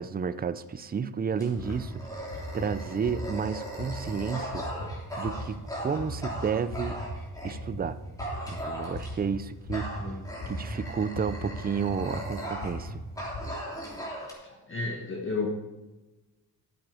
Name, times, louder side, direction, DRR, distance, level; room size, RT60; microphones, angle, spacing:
voice 1, 0.0-4.6 5.2-7.0 7.4-8.0 8.5-9.9 10.5-13.0, right 6 dB, 25° right, 13 dB, 0.4 m, -31 dB
Dog, 1.4-7.6 8.2-9.3 9.7-12.9 13.2-14.3, equal, 10° left, 3.1 m, -38 dB
sound 1, 1.5-13.4, equal, 85° left, 3.4 m, -39 dB
voice 2, 14.4-15.5, left 3 dB, 30° left, 0 dB, 1.4 m, -33 dB
12.5 x 7.6 x 4.9 m, 1.1 s
wide cardioid pair, 135°, 38 cm